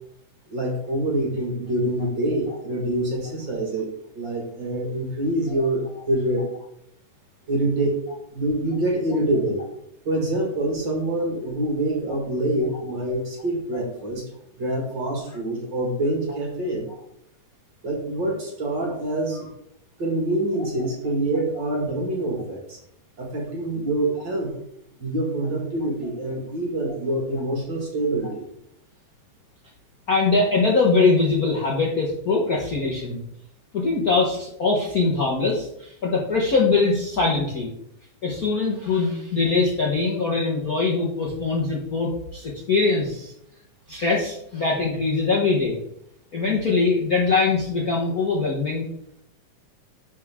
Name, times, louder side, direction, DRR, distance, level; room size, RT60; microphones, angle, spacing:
voice 1, 0.5-3.9 4.1-6.5 7.5-8.0 8.3-9.6 10.1-14.2 14.6-16.9 17.8-19.5 20.0-22.8 23.2-24.5 25.0-28.5, right 1 dB, 40° right, 0 dB, 2.2 m, -25 dB
voice 2, 30.1-33.2 33.7-37.7 38.2-43.3 43.9-45.8 46.3-48.9, left 3 dB, 80° left, -3 dB, 0.8 m, -22 dB
12.0 x 5.1 x 3.6 m, 0.76 s
omnidirectional pair, 3.7 m